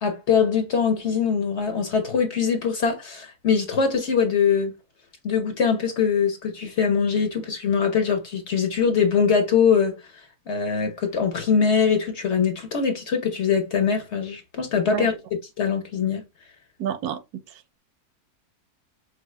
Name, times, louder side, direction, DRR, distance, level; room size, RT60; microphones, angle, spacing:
voice 1, 0.0-4.7 5.2-10.0 10.5-15.2 15.6-16.2, left 6 dB, 55° left, 0.9 m, -22 dB
voice 2, 16.8-17.2 17.5-17.8, right 9 dB, 75° right, 1.0 m, -29 dB
4.8 x 2.3 x 3.1 m
omnidirectional pair, 1.7 m